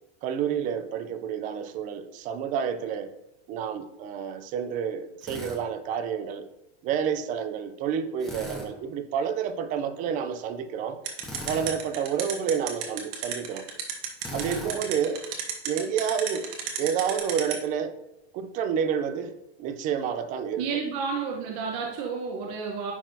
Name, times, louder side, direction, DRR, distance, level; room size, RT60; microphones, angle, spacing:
voice 1, 0.2-3.1 3.5-6.5 6.8-11.0 11.5-13.7 14.3-15.2 15.6-16.5 16.8-17.9 18.3-19.3 19.6-20.7, right 7 dB, 25° right, 10 dB, 0.3 m, -29 dB
Drill, 5.2-5.6 8.2-8.7 11.2-11.8 14.2-14.8, left 1 dB, ahead, 1.0 m, -38 dB
sound 1, 11.0-17.5, right 11 dB, 65° right, 1.4 m, -31 dB
voice 2, 20.6-22.9, right 5 dB, 45° right, -1 dB, 0.9 m, -31 dB
10.0 x 4.0 x 2.6 m, 0.92 s
supercardioid pair, 150°, 32 cm